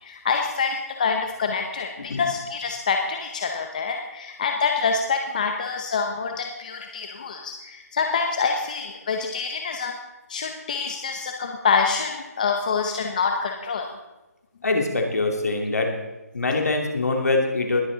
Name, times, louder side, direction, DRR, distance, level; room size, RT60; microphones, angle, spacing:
voice 1, 0.0-10.0 10.3-13.9, left 5 dB, 30° left, 4 dB, 0.8 m, -26 dB
voice 2, 14.6-16.0 16.3-17.8, left 3 dB, 65° left, 3 dB, 2.6 m, -23 dB
20.5 x 8.1 x 3.9 m, 1.0 s
hypercardioid pair, 170°, 9 cm